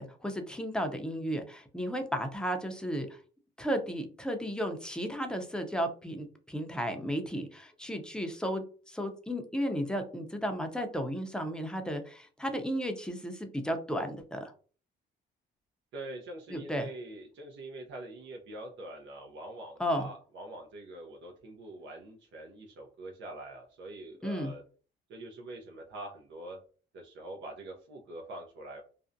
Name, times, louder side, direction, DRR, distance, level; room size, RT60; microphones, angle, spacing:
voice 1, 0.0-3.2 3.6-14.5 16.5-16.9 19.8-20.1 24.2-24.5, equal, 5° left, 5 dB, 0.5 m, -34 dB
voice 2, 15.9-24.6 25.1-26.6 26.9-28.8, right 1 dB, 70° right, 1 dB, 0.6 m, -44 dB
2.5 x 2.1 x 2.5 m, 0.39 s
cardioid pair, 90°, 20 cm